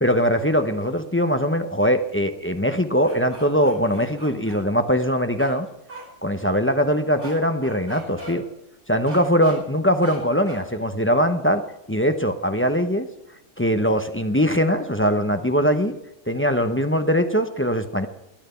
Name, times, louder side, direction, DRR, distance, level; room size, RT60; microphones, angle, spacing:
voice 1, 0.0-5.7 6.2-8.5 8.9-11.6 11.9-13.1 13.6-16.0 16.3-18.1, equal, 15° left, 7 dB, 0.5 m, -21 dB
sound 1, 3.0-4.6 5.4-5.5 5.9-6.0 7.2-7.3 7.6-8.3 9.1-9.6 10.0-10.2 10.5-10.6, right 1 dB, 40° right, 5.3 m, -39 dB
13.5 x 10.5 x 6.8 m, 0.86 s
omnidirectional pair, 1.3 m